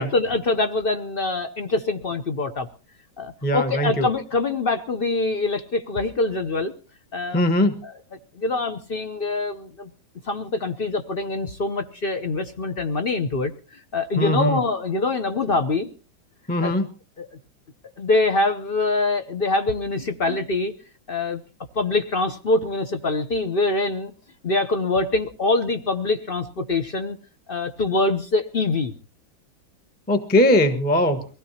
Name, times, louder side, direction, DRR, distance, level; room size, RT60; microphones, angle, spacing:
voice 1, 0.0-2.7 3.2-6.7 7.1-7.4 7.8-7.9 8.4-9.9 10.2-15.9 16.6-16.7 17.2-17.3 18.0-20.7 21.1-21.4 21.7-24.1 24.4-27.2 27.5-28.9, left 3 dB, 55° left, 8 dB, 0.6 m, -24 dB
voice 2, 3.4-4.1 7.3-7.7 14.2-14.6 16.5-16.8 20.3-20.4 30.1-31.2, left 1 dB, 5° left, 7 dB, 0.9 m, -20 dB
23.5 x 16.5 x 2.9 m, 0.36 s
omnidirectional pair, 2.1 m